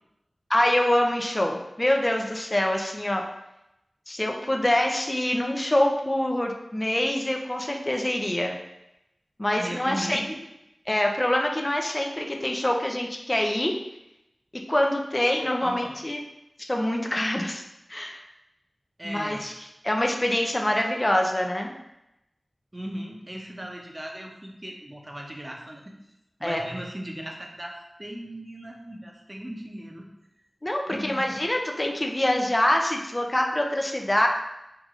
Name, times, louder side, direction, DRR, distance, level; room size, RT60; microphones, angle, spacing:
voice 1, 0.5-3.2 4.1-8.6 9.4-10.2 10.9-13.7 14.7-16.2 16.7-17.6 17.9-18.2 19.0-19.5 19.8-21.7 26.4-26.6 30.6-34.3, left 1 dB, 25° left, 1 dB, 0.5 m, -25 dB
voice 2, 9.5-10.4 15.6-16.0 19.0-19.4 22.7-25.9 26.4-30.1 30.9-31.4, right 1 dB, 25° right, 0 dB, 0.8 m, -37 dB
4.8 x 2.6 x 3.7 m, 0.87 s
wide cardioid pair, 45°, 0 cm